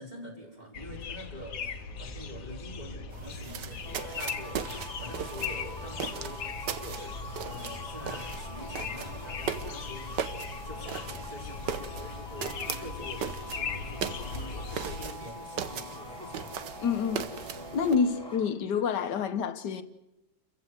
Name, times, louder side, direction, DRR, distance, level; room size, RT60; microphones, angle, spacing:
voice 1, 0.0-7.2 7.4-16.6, equal, 25° right, 4.9 m, -46 dB
sound 1, 0.7-15.1, left 5 dB, 60° left, 1.4 m, -39 dB
sound 2, 3.1-18.0, right 8 dB, 90° right, 1.7 m, -39 dB
sound 3, 3.8-18.5, left 2 dB, 15° left, 3.1 m, -44 dB
voice 2, 16.8-19.8, left 6 dB, 85° left, 1.7 m, -28 dB
28.5 x 15.5 x 8.0 m
omnidirectional pair, 1.8 m